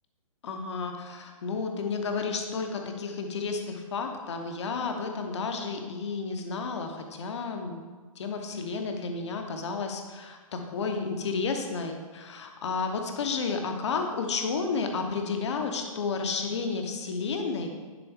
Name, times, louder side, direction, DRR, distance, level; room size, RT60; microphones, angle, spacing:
voice 1, 0.4-7.9 8.2-17.7, left 4 dB, 50° left, 4 dB, 0.9 m, -32 dB
10.5 x 3.9 x 3.6 m, 1.4 s
hypercardioid pair, 165°, 18 cm